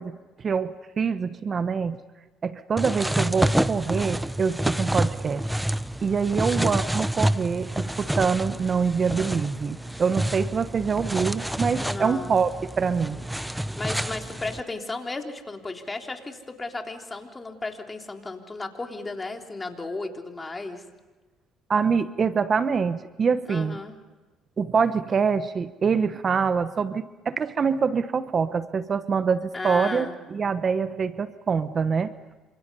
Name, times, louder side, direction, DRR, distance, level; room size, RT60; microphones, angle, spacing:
voice 1, 0.0-2.0 2.4-5.6 6.0-12.5 12.8-13.2 21.7-23.8 24.6-32.1, right 5 dB, 45° right, 12 dB, 1.0 m, -25 dB
sound 1, 2.8-14.6, right 1 dB, 5° right, 0.8 m, -28 dB
voice 2, 6.3-6.8 11.8-12.4 13.8-20.8 23.5-24.0 29.5-30.1, left 3 dB, 25° left, 3 dB, 3.6 m, -34 dB
28.0 x 26.5 x 5.5 m, 1.3 s
supercardioid pair, 75°, 0 cm